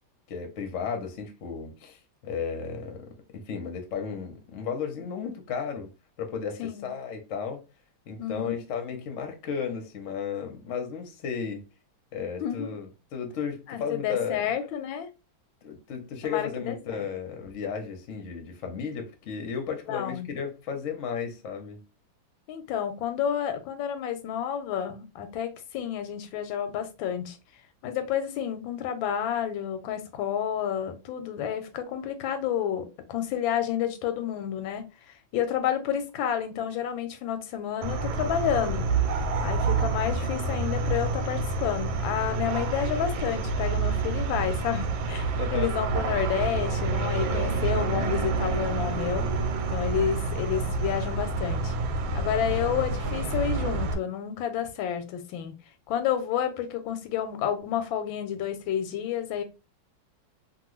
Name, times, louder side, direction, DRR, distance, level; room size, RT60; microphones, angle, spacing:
voice 1, 0.3-5.9 6.2-7.6 8.1-11.6 12.1-14.5 15.6-21.8 45.4-45.7, left 6 dB, 60° left, 0.8 m, -34 dB
voice 2, 8.2-8.6 12.4-12.7 13.7-15.1 16.2-17.1 19.9-20.3 22.5-27.4 27.8-38.9 39.4-49.3 49.7-51.8 52.1-55.5 55.9-59.4, left 9 dB, 85° left, 1.4 m, -30 dB
sound 1, 37.8-53.9, right 3 dB, 90° right, 1.4 m, -28 dB
2.9 x 2.4 x 3.0 m
omnidirectional pair, 2.1 m